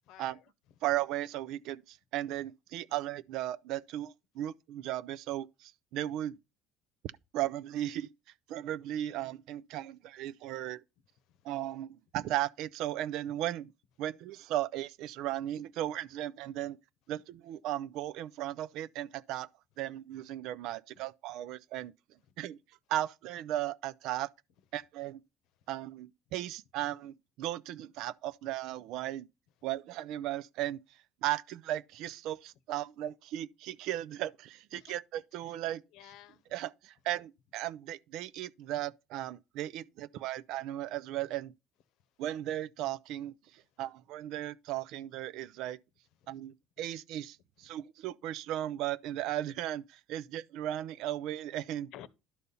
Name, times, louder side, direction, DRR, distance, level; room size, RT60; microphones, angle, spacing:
voice 1, 0.1-0.5 11.2-11.5 34.7-34.9 35.4-35.5 35.9-36.5 46.2-46.3 47.7-47.8 51.9-52.1, left 12 dB, 65° left, 0.9 m, -53 dB
voice 2, 0.8-6.4 7.3-8.1 8.5-10.8 11.4-13.7 14.0-16.8 17.1-19.5 19.8-21.9 22.4-22.6 22.9-24.3 24.7-25.2 25.7-29.3 29.6-30.8 31.2-35.8 36.5-41.5 42.2-45.8 46.3-51.9, right 13 dB, 65° right, 0.4 m, -36 dB
11.5 x 4.1 x 6.9 m
cardioid pair, 155°, 0 cm